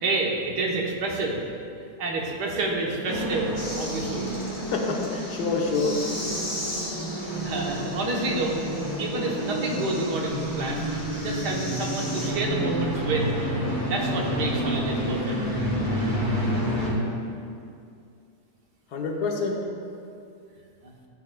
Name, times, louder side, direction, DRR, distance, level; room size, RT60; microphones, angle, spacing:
voice 1, 0.0-1.4 2.0-4.3 7.4-8.6 9.0-13.3 13.8-15.4 20.8-20.9, right 3 dB, 75° right, -1 dB, 1.7 m, -29 dB
sound 1, 3.0-16.9, equal, 15° right, 2.0 m, -29 dB
sound 2, 3.6-12.3, left 1 dB, 10° left, 1.1 m, -38 dB
voice 2, 4.7-6.1 18.9-19.7, left 3 dB, 70° left, 1 dB, 1.4 m, -27 dB
13.5 x 7.5 x 2.3 m, 2.4 s
omnidirectional pair, 1.8 m